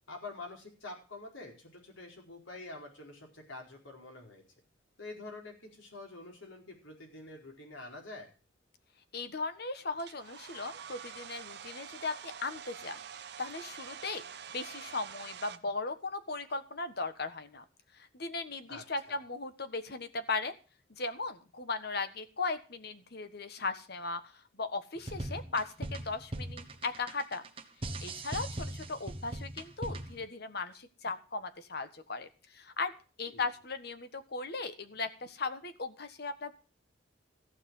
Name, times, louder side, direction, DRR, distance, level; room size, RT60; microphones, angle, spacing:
voice 1, 0.1-4.4 5.0-8.3 18.7-19.2 33.3-33.5, left 2 dB, 80° left, 1 dB, 4.6 m, -47 dB
voice 2, 9.1-13.0 13.4-14.2 14.5-17.6 17.9-20.6 20.9-27.4 28.0-32.9 33.2-36.5, left 3 dB, 55° left, 10 dB, 1.4 m, -37 dB
Domestic sounds home sounds, 10.0-15.6, right 7 dB, 60° right, 0.9 m, -46 dB
sound 1, 25.0-30.2, right 1 dB, 30° right, 1.3 m, -39 dB
15.0 x 6.0 x 7.8 m, 0.36 s
head